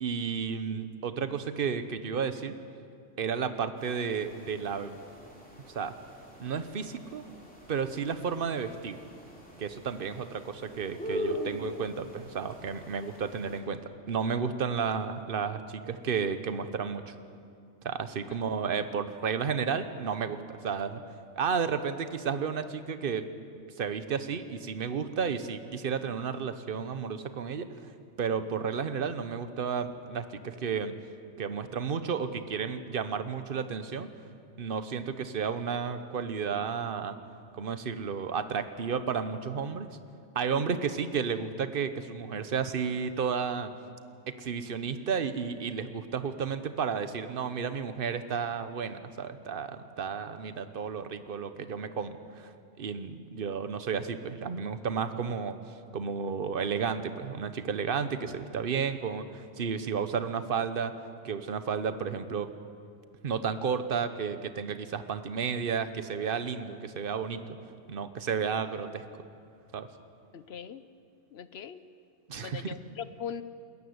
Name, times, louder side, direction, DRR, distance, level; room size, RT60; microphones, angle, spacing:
voice 1, 0.0-2.6 3.2-5.0 5.7-5.9 6.4-7.2 7.7-9.0 9.6-17.2 17.8-21.0 21.3-23.3 23.5-27.9 28.2-30.9 31.4-34.1 34.6-37.2 37.5-39.9 40.3-43.7 44.3-52.5 52.8-55.6 55.9-60.9 61.2-62.5 63.2-67.6 67.9-69.2 69.7-69.9 72.3-72.8, right 6 dB, 50° right, 11 dB, 1.1 m, -32 dB
sound 1, 3.8-13.6, equal, 5° left, 3.3 m, -42 dB
voice 2, 70.3-70.8 71.3-71.8 72.4-73.4, left 8 dB, 60° left, 13 dB, 0.9 m, -40 dB
21.0 x 14.0 x 9.6 m, 2.4 s
omnidirectional pair, 1.3 m